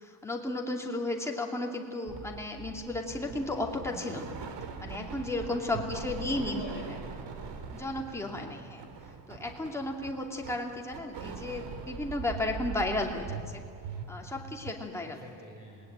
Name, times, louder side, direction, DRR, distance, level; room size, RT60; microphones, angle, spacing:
voice 1, 0.0-4.4 4.8-6.6 7.7-8.8 9.3-13.6 14.1-15.2, left 2 dB, 5° left, 0 dB, 2.6 m, -34 dB
sound 1, 2.1-14.7, right 5 dB, 70° right, 2.7 m, -42 dB
voice 2, 5.8-7.6 8.3-8.7 15.0-15.9, right 1 dB, 20° right, -3 dB, 6.1 m, -47 dB
27.0 x 20.5 x 9.0 m, 2.1 s
cardioid pair, 170°, 42 cm